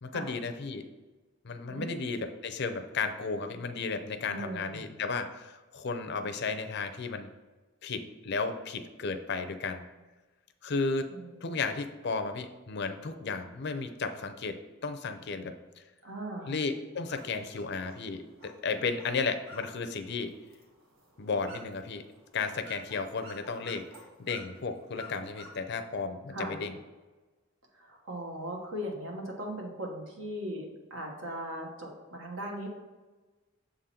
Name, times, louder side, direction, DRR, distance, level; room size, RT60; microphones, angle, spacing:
voice 1, 0.0-0.8 1.4-7.3 7.8-9.8 10.6-11.1 11.4-14.6 14.8-15.5 16.5-20.3 21.2-22.0 22.3-23.9 24.2-26.7, left 4 dB, 55° left, 7 dB, 0.5 m, -34 dB
voice 2, 4.3-5.0 11.1-11.4 16.0-16.5 26.3-26.6 27.7-32.7, right 1 dB, 70° right, 0 dB, 1.4 m, -39 dB
sound 1, 17.1-26.0, right 1 dB, 90° right, 1.4 m, -53 dB
7.1 x 3.8 x 4.3 m, 1.2 s
head